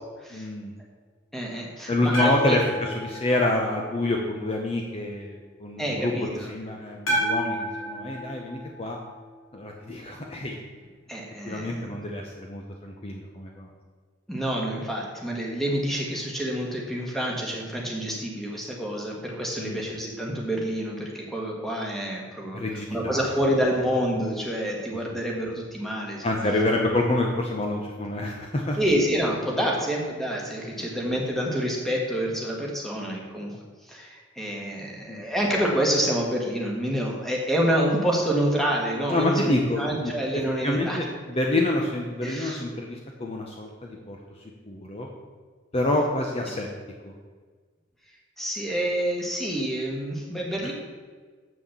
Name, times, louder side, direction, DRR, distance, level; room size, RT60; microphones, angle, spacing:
voice 1, 0.3-0.7 1.9-9.0 9.5-10.6 11.5-13.7 19.6-19.8 22.5-23.2 25.1-25.2 26.2-28.8 30.8-30.9 35.1-35.2 39.1-44.2 44.7-45.1 45.7-46.7 47.0-47.1, left 2 dB, 30° left, 0 dB, 0.8 m, -27 dB
voice 2, 1.3-2.6 5.8-6.5 7.1-7.2 11.1-11.8 14.3-22.6 22.9-26.2 28.8-33.5 33.9-41.0 42.2-42.6 48.4-50.7, equal, ahead, -2 dB, 1.5 m, -27 dB
sound 1, 2.1-4.3 7.1-9.4, right 1 dB, 85° left, 3.1 m, -31 dB
7.3 x 6.2 x 7.2 m, 1.5 s
head